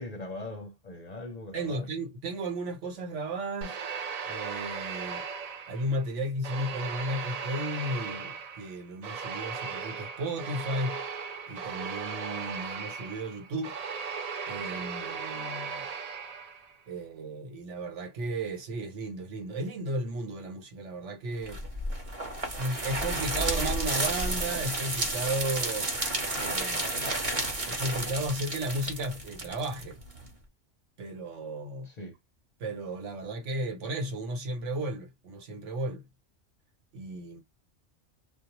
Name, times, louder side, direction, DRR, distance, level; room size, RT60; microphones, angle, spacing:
voice 1, 0.0-1.9 31.8-32.2, left 2 dB, 45° left, 0.6 m, -40 dB
voice 2, 1.5-3.8 4.2-5.2 5.7-11.0 11.5-13.8 14.5-15.9 16.9-21.6 22.6-25.9 26.3-27.2 27.7-30.0 31.0-31.9 32.6-36.0 36.9-37.4, right 1 dB, 85° right, 1.3 m, -34 dB
sound 1, 3.6-6.0 6.4-16.8, right 6 dB, 55° right, 0.4 m, -37 dB
sound 2, 21.5-30.3, right 1 dB, 30° right, 0.9 m, -32 dB
2.5 x 2.1 x 2.9 m
omnidirectional pair, 1.2 m